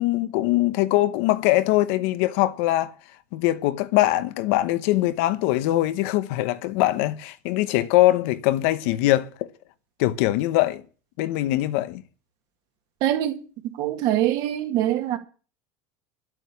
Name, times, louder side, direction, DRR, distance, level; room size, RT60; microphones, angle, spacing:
voice 1, 0.0-2.9 3.3-9.3 10.0-10.8 11.2-12.0, left 16 dB, 60° left, 0.9 m, -22 dB
voice 2, 13.0-13.4 13.8-15.2, right 12 dB, 45° right, 2.0 m, -23 dB
12.0 x 7.9 x 8.2 m
cardioid pair, 175°, 9 cm